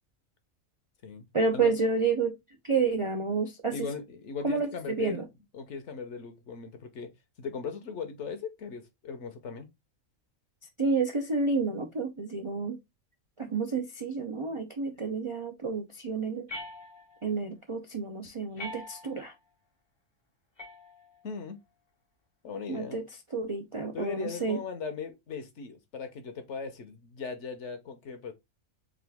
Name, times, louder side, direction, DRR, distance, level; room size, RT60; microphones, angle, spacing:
voice 1, 1.3-2.4 2.6-3.9 4.4-5.2 10.8-12.8 13.4-16.5 17.2-19.3 22.7-23.0 23.3-24.6, right 4 dB, 45° right, 0.4 m, -30 dB
voice 2, 3.7-5.2 5.5-7.1 7.4-9.7 18.5-18.7 21.2-21.6 22.4-23.0 23.9-28.3, left 5 dB, 60° left, 1.0 m, -38 dB
sound 1, 16.5-17.4 18.6-19.4 20.6-21.4, left 1 dB, 30° left, 0.5 m, -43 dB
3.9 x 3.3 x 3.4 m
omnidirectional pair, 1.5 m